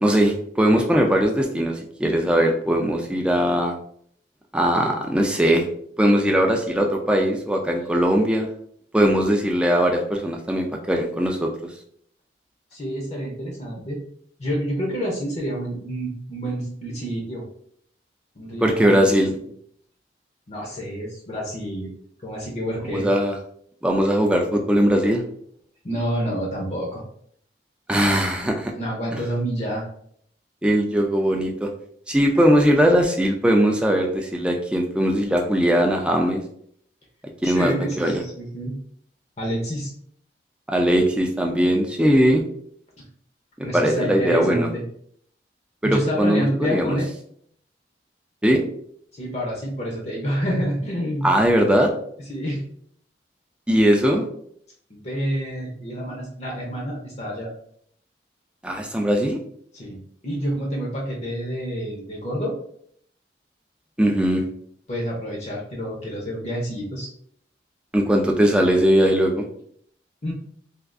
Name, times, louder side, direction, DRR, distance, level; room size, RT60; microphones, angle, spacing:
voice 1, 0.0-3.7 4.5-5.7 6.0-8.5 8.9-11.5 18.6-19.3 22.9-23.4 23.8-25.2 27.9-28.7 30.6-31.7 32.1-36.4 37.4-38.2 40.7-42.4 43.6-44.7 45.8-47.0 48.4-48.6 51.2-51.9 53.7-54.3 58.6-59.4 64.0-64.5 67.9-69.5, equal, 5° right, 1 dB, 0.3 m, -20 dB
voice 2, 12.7-14.0 14.4-17.4 18.4-19.5 20.5-21.9 22.2-23.1 25.8-27.0 27.9-28.1 28.7-29.8 37.4-38.8 39.4-39.9 43.6-44.8 45.8-47.1 49.2-51.3 52.2-52.6 54.9-57.5 59.7-62.5 64.9-67.1 70.2-70.3, equal, 35° left, -1 dB, 0.6 m, -28 dB
3.4 x 2.4 x 2.4 m, 0.64 s
head